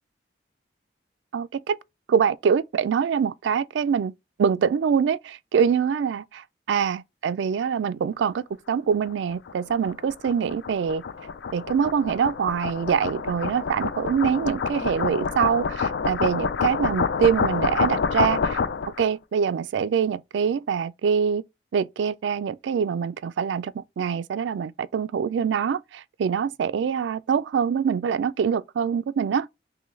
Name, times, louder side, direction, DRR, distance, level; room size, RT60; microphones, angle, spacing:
voice 1, 1.3-1.8 2.1-4.1 4.4-11.0 11.5-18.6 19.0-21.4 21.7-29.5, right 7 dB, 80° right, 0.3 m, -24 dB
sound 1, 9.1-19.0, left 5 dB, 75° left, 0.4 m, -28 dB
3.8 x 3.1 x 3.1 m
head